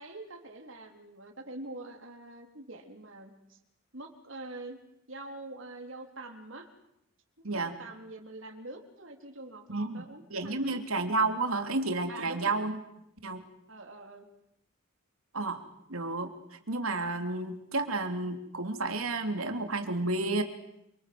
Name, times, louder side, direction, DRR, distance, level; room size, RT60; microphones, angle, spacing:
voice 1, 0.0-3.6 3.9-4.8 5.1-6.7 7.5-10.8 12.1-12.6 13.7-14.3, right 2 dB, 65° right, 5 dB, 3.8 m, -45 dB
voice 2, 7.4-7.8 9.7-10.0 10.3-12.8 13.2-13.4 15.3-15.6 15.9-20.4, right 3 dB, 90° right, 6 dB, 3.3 m, -31 dB
27.5 x 25.5 x 7.9 m, 0.80 s
head